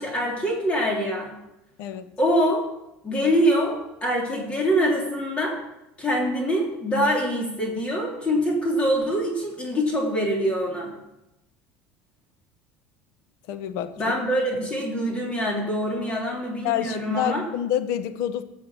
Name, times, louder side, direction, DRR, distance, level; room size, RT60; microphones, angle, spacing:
voice 1, 0.0-1.3 2.2-2.6 3.0-5.6 6.0-10.9 14.0-17.4, equal, 25° left, -1 dB, 3.5 m, -24 dB
voice 2, 1.8-2.1 13.5-14.0 16.6-18.4, left 11 dB, 70° left, 12 dB, 1.0 m, -27 dB
15.0 x 7.3 x 6.2 m, 0.91 s
supercardioid pair, 110°, 5 cm